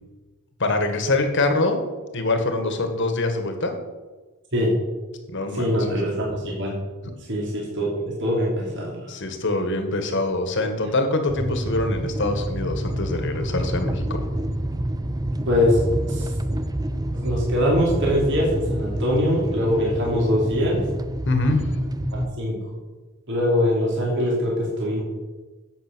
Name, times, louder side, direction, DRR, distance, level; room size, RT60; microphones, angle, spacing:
voice 1, 0.6-1.8 2.1-3.7 5.3-5.7 9.1-14.2 21.3-21.6, left 2 dB, 55° left, 6 dB, 1.8 m, -24 dB
voice 2, 5.5-6.7 7.3-9.1 15.5-15.8 16.1-16.3 17.1-20.8 22.1-22.5 23.3-25.0, left 1 dB, 55° right, -4 dB, 3.0 m, -23 dB
sound 1, 11.3-22.3, right 1 dB, 15° right, 0.5 m, -28 dB
11.0 x 8.1 x 6.3 m, 1.3 s
head